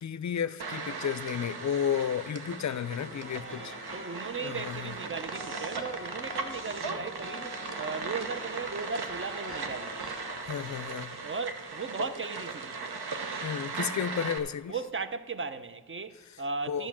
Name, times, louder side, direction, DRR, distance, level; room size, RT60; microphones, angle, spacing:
voice 1, 0.0-3.7 4.4-4.9 10.4-11.2 13.4-14.7 16.7-16.9, left 8 dB, 50° left, 0.4 m, -32 dB
sound 1, 0.6-14.4, right 4 dB, 85° right, 1.0 m, -38 dB
sound 2, 2.6-10.8, left 2 dB, 55° right, 1.9 m, -46 dB
voice 2, 3.3-10.1 11.2-13.1 14.7-16.9, right 4 dB, 35° right, 0.6 m, -37 dB
11.5 x 5.1 x 7.3 m
cardioid pair, 65°, 38 cm